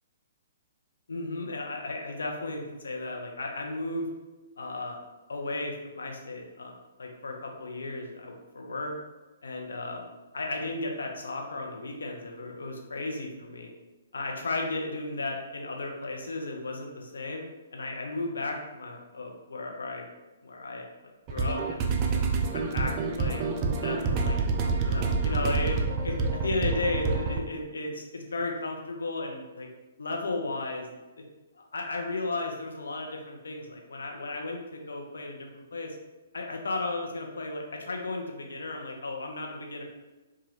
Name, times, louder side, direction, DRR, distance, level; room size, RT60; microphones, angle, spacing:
voice 1, 1.1-4.1 4.6-5.0 5.3-6.7 7.0-8.9 9.4-10.1 10.3-13.7 14.1-17.4 17.7-20.0 20.4-20.8 21.3-21.8 22.1-22.2 22.5-24.4 24.9-25.8 26.0-29.7 30.0-30.9 31.1-31.2 31.5-36.0 36.3-39.8, left 2 dB, 75° left, 1 dB, 0.6 m, -34 dB
sound 1, 21.3-27.4, right 4 dB, 30° right, 0.3 m, -27 dB
3.1 x 2.3 x 3.0 m, 1.1 s
figure-of-eight pair, 125°, 0 cm